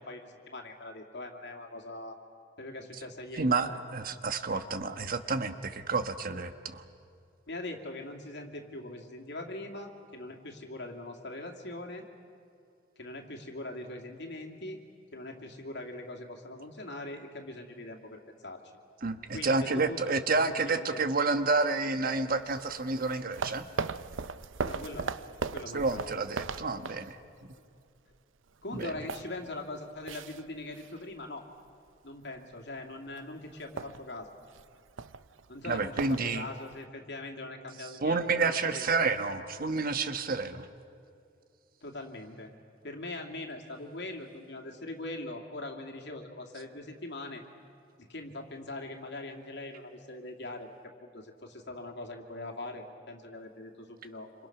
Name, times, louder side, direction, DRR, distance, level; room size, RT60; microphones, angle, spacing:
voice 1, 0.0-2.2 2.6-3.6 7.5-12.1 13.0-14.8 15.1-18.6 19.3-21.0 24.6-25.2 25.5-26.1 28.6-31.5 32.0-34.3 35.5-39.1 41.8-42.5 42.8-47.4 48.0-54.3, left 2 dB, 65° left, 1 dB, 2.6 m, -42 dB
voice 2, 3.3-6.8 19.0-23.7 25.7-27.2 28.7-28.9 35.7-36.5 37.8-40.7, right 3 dB, 50° right, 9 dB, 1.3 m, -29 dB
sound 1, 22.3-27.6 28.0-28.2 28.5-31.2 31.6-31.9 32.4-32.8 33.1-33.2 33.5-36.8, right 5 dB, 80° right, 0.7 m, -39 dB
27.5 x 27.0 x 6.0 m, 2.6 s
head